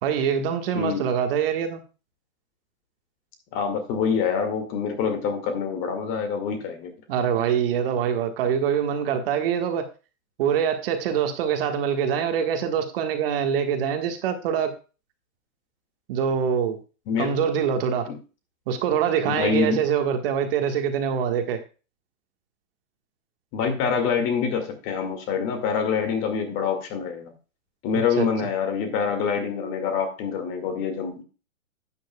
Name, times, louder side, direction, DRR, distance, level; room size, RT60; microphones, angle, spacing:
voice 1, 0.0-1.8 7.1-9.9 10.4-14.7 16.1-16.8 17.2-18.1 18.7-21.6 28.2-28.3, right 8 dB, 45° right, 6 dB, 1.6 m, -24 dB
voice 2, 0.7-1.1 3.5-6.9 17.1-17.3 18.1-18.2 19.3-19.8 23.5-27.3 27.8-31.2, left 6 dB, 30° left, 6 dB, 2.1 m, -26 dB
12.0 x 9.3 x 2.3 m, 0.33 s
hypercardioid pair, 140°, 41 cm